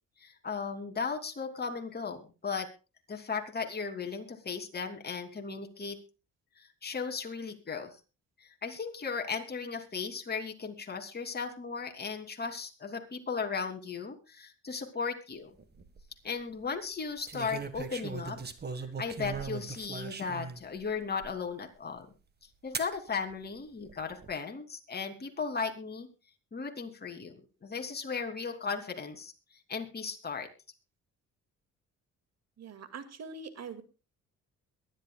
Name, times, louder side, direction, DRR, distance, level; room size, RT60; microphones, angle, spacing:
voice 1, 0.2-2.7 3.1-6.0 6.6-8.0 8.6-15.5 16.2-18.4 18.8-22.1 22.6-26.1 26.5-29.3 29.7-30.5, left 5 dB, 30° left, 4 dB, 3.0 m, -36 dB
sound 1, 15.6-16.0 17.3-20.6 21.2-21.3 22.7-23.0 23.8-24.3, right 5 dB, 35° right, 1.7 m, -39 dB
voice 2, 32.6-33.8, right 5 dB, 60° right, 10 dB, 2.2 m, -43 dB
22.5 x 11.5 x 2.4 m, 0.31 s
cardioid pair, 90°, 30 cm